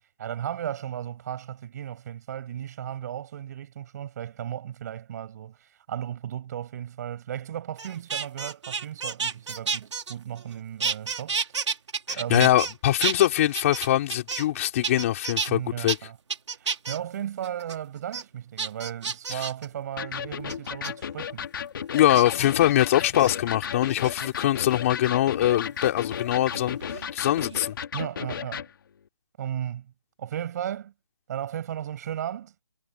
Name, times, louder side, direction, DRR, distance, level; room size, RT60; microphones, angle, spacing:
voice 1, 0.2-11.4 12.1-12.5 15.5-16.2 16.6-21.5 27.9-28.7 29.4-29.9 30.2-30.9 31.3-32.5, right 10 dB, 30° right, 6.3 m, -35 dB
sound 1, 7.8-10.5 10.8-12.7 13.0-14.6 14.8-15.5 15.9-16.0 16.3-17.0 17.4-17.8 18.1-18.2 18.6-19.7 20.5-20.9 22.1-22.5 23.1-23.3 23.9-24.5 25.9-27.1 27.3-27.7, right 5 dB, 60° right, 3.4 m, -31 dB
voice 2, 12.1-16.0 19.3-19.4 21.9-27.8, left 13 dB, 25° left, 5.0 m, -23 dB
Electric guitar, 20.0-28.7, left 8 dB, 40° left, 2.9 m, -34 dB
hypercardioid pair, 165°, 17 cm